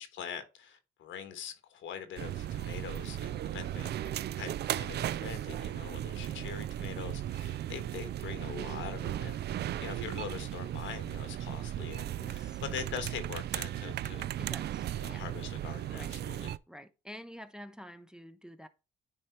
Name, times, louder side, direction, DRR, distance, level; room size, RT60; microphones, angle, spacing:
voice 1, 0.0-3.9 4.4-14.2 14.9-16.5, left 8 dB, 75° left, 1.4 m, -43 dB
sound 1, 2.2-16.6, right 12 dB, 55° right, 0.4 m, -36 dB
voice 2, 12.2-12.6 14.4-15.2 15.9-16.1 16.7-18.7, equal, 5° right, 0.6 m, -49 dB
9.8 x 3.4 x 4.2 m
cardioid pair, 90°, 20 cm